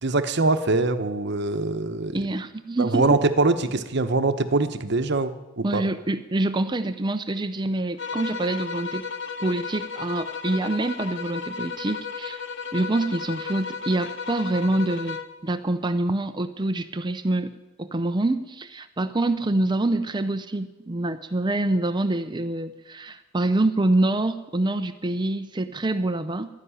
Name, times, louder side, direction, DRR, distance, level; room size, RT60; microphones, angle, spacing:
voice 1, 0.0-2.2 2.8-5.8, right 3 dB, 55° right, 10 dB, 1.0 m, -23 dB
voice 2, 2.1-3.2 5.6-9.1 9.4-12.4 12.7-17.5 17.8-26.5, right 2 dB, 20° right, 10 dB, 0.6 m, -26 dB
sound 1, 8.0-15.4, left 5 dB, 60° left, 1.0 m, -34 dB
12.5 x 10.5 x 9.9 m, 1.0 s
head